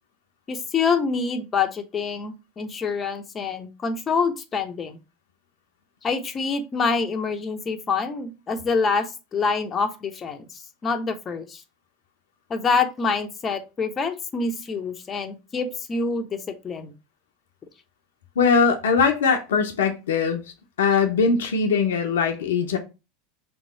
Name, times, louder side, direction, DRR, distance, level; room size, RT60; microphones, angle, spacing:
voice 1, 0.5-5.0 6.0-10.5 10.8-11.6 12.5-16.4 16.6-16.9, left 4 dB, 30° left, 0.8 m, -26 dB
voice 2, 18.4-20.4 20.8-22.8, left 5 dB, 75° left, 0.7 m, -21 dB
3.5 x 3.1 x 4.0 m
hypercardioid pair, 85°, 0 cm